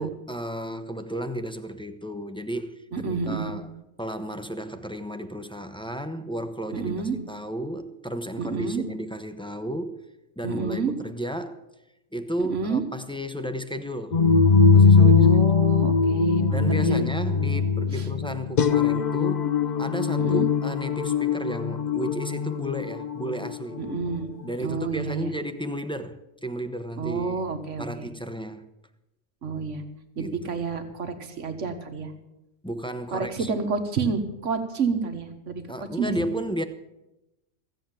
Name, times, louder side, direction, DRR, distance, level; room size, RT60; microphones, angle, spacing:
voice 1, 0.0-3.7 4.0-6.9 7.3-10.0 10.4-11.6 12.1-14.2 14.7-15.3 16.5-19.4 19.8-23.8 24.4-27.4 27.8-28.6 30.2-30.6 32.6-33.5 35.7-36.6, right 1 dB, 5° left, 0.7 m, -33 dB
voice 2, 2.9-3.5 6.7-7.2 8.4-8.8 10.4-10.9 12.4-12.8 15.0-17.0 17.9-18.1 20.2-20.5 23.8-24.3 24.6-25.3 27.0-28.1 29.4-29.8 30.2-32.1 33.1-35.6 36.0-36.3, right 5 dB, 85° right, 1.7 m, -29 dB
sound 1, 14.1-24.0, left 5 dB, 45° left, 0.7 m, -21 dB
15.5 x 7.9 x 8.9 m
omnidirectional pair, 1.2 m